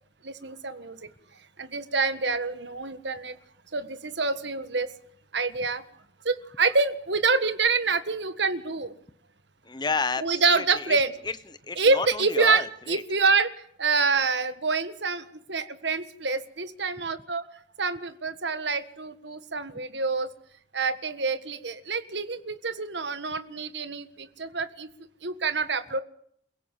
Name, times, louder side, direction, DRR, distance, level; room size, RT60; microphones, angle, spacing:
voice 1, 0.2-1.0 1.6-3.4 3.7-4.9 5.3-5.8 6.2-8.9 10.2-11.1 11.8-13.5 13.8-17.4 17.8-20.3 20.7-24.9 25.2-26.0, right 4 dB, 65° right, 11 dB, 1.6 m, -26 dB
voice 2, 9.6-11.0 11.2-13.0, left 4 dB, 25° left, 14 dB, 0.9 m, -31 dB
28.5 x 17.0 x 7.6 m, 0.68 s
head